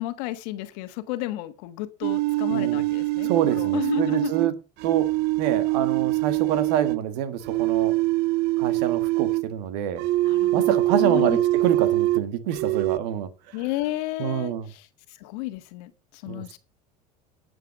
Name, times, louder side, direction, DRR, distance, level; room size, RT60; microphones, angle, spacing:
voice 1, 0.0-4.3 10.2-11.4 13.5-14.9 15.2-16.6, left 16 dB, 70° left, 1.4 m, -32 dB
sound 1, 2.0-7.0 7.4-9.5 10.0-12.3 12.5-13.0, right 18 dB, 55° right, 0.5 m, -24 dB
voice 2, 2.5-2.8 3.2-4.5 4.8-7.9 8.6-10.1 10.5-13.3 14.2-14.7 16.3-16.4, right 10 dB, 75° right, 1.6 m, -27 dB
11.0 x 7.1 x 6.2 m
supercardioid pair, 95°, 21 cm